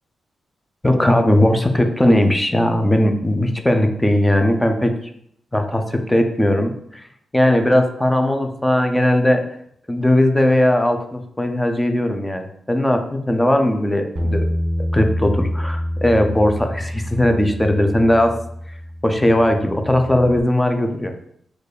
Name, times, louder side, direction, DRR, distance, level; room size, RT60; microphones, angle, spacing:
voice 1, 0.8-5.0 5.5-6.7 7.3-9.4 9.9-14.5 14.9-18.4 19.0-21.1, left 1 dB, 5° left, 6 dB, 0.4 m, -18 dB
Bass guitar, 14.2-20.4, equal, 10° right, 0.8 m, -26 dB
4.4 x 2.4 x 4.8 m, 0.70 s
wide cardioid pair, 150°, 0 cm